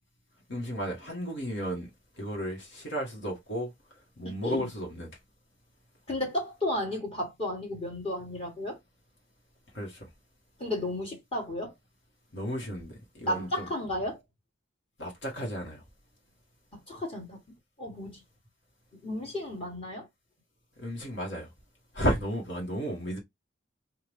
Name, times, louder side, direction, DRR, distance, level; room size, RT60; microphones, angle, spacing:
voice 1, 0.5-1.9 2.2-3.7 4.2-5.2 9.7-10.1 12.3-13.7 15.0-15.8 20.8-21.5 21.9-23.2, equal, 65° left, 1.5 m, -33 dB
voice 2, 4.2-4.7 6.1-8.8 10.6-11.7 13.2-14.2 16.7-17.4 17.8-18.2 19.0-20.1, left 1 dB, 30° left, 1.5 m, -33 dB
4.6 x 2.5 x 3.4 m
head